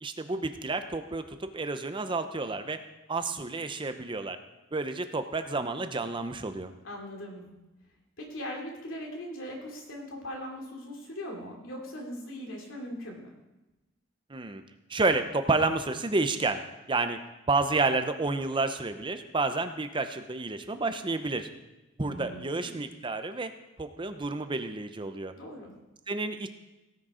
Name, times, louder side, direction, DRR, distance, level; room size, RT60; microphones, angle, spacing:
voice 1, 0.0-2.8 3.1-4.4 4.7-6.7 14.3-14.6 14.9-17.2 17.5-21.5 22.0-23.5 23.8-25.3 26.1-26.5, right 3 dB, 25° right, 8 dB, 0.6 m, -30 dB
voice 2, 6.8-7.4 8.2-13.3 22.0-22.8 25.3-25.7, equal, 80° left, 0 dB, 2.8 m, -40 dB
17.5 x 6.3 x 5.0 m, 1.0 s
head